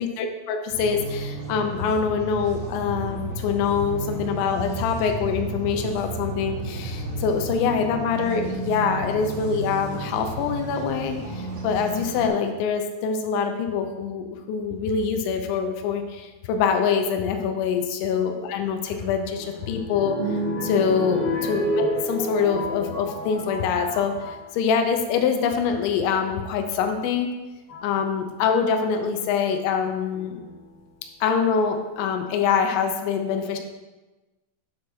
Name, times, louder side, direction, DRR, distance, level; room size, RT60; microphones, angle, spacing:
voice 1, 0.0-20.2 20.6-27.3 27.8-30.4 31.2-33.6, left 6 dB, 80° left, 6 dB, 2.8 m, -25 dB
sound 1, 0.7-12.3, right 3 dB, 65° right, 3.5 m, -33 dB
sound 2, 18.8-24.5 25.2-25.7 26.9-27.0 27.7-28.0 30.1-30.8 31.4-31.5 31.7-31.8, equal, 55° left, 2.5 m, -30 dB
8.3 x 5.9 x 3.3 m, 1.1 s
omnidirectional pair, 5.6 m